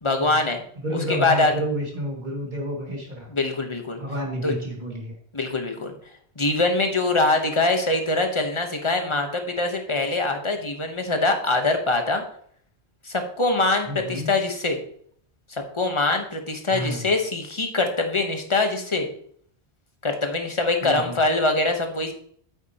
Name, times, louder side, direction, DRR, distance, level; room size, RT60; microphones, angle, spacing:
voice 1, 0.0-0.6 0.9-1.5 3.3-4.0 4.4-4.5 5.3-5.9 6.4-12.2 13.0-14.8 15.5-19.1 20.0-22.1, left 2 dB, 30° left, 4 dB, 1.2 m, -23 dB
voice 2, 0.8-3.3 4.0-5.1 13.9-14.3 16.7-17.0 20.8-21.2, equal, 45° right, -1 dB, 2.4 m, -30 dB
8.4 x 8.1 x 3.0 m, 0.62 s
omnidirectional pair, 1.1 m